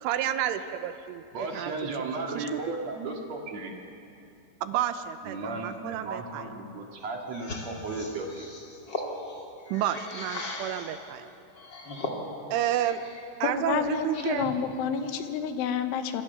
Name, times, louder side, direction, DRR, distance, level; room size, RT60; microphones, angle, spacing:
voice 1, 0.0-1.2 1.5-1.7 2.3-2.8 4.6-6.4 9.7-11.3 12.5-13.0 13.4-14.5, right 11 dB, 85° right, 10 dB, 3.4 m, -30 dB
voice 2, 1.3-3.7 5.2-8.5, right 3 dB, 50° right, 1 dB, 2.3 m, -35 dB
sound 1, 7.3-11.0 11.5-13.2 13.6-14.6, left 2 dB, 30° left, 2.3 m, -38 dB
voice 3, 13.4-16.2, left 7 dB, 80° left, 8 dB, 3.4 m, -29 dB
26.0 x 25.5 x 7.0 m, 2.6 s
omnidirectional pair, 5.7 m